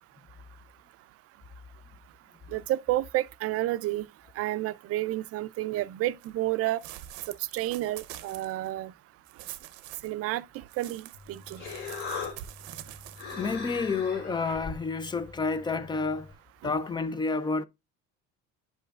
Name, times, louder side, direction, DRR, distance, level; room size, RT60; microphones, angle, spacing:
voice 1, 2.5-4.1 4.4-6.8 7.3-8.9 10.0-11.6 16.6-16.7, right 15 dB, 50° right, 0.5 m, -30 dB
sound 1, 6.2-6.3 6.8-8.7 9.3-10.1 10.7-13.6, right 13 dB, 80° right, 0.7 m, -46 dB
Human voice, 11.1-16.3, left 5 dB, 60° left, 2.2 m, -40 dB
voice 2, 13.4-16.3 16.6-17.6, left 4 dB, 15° left, 0.4 m, -29 dB
10.0 x 5.5 x 2.3 m
cardioid pair, 125°, 30 cm